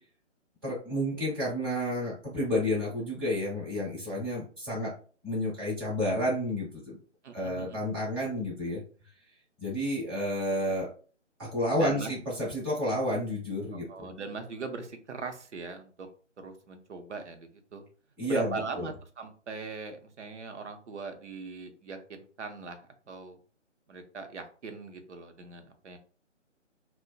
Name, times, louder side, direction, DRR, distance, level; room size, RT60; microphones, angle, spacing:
voice 1, 0.6-4.9 5.2-7.0 7.3-8.8 9.6-10.9 11.4-14.1 18.2-18.9, left 1 dB, 20° right, -7 dB, 0.9 m, -30 dB
voice 2, 7.2-7.8 11.8-12.1 13.9-16.1 16.4-17.8 18.3-22.8 23.1-23.4 23.9-26.0, right 4 dB, 65° right, 6 dB, 0.7 m, -40 dB
2.5 x 2.1 x 2.3 m, 0.41 s
figure-of-eight pair, 150°, 37 cm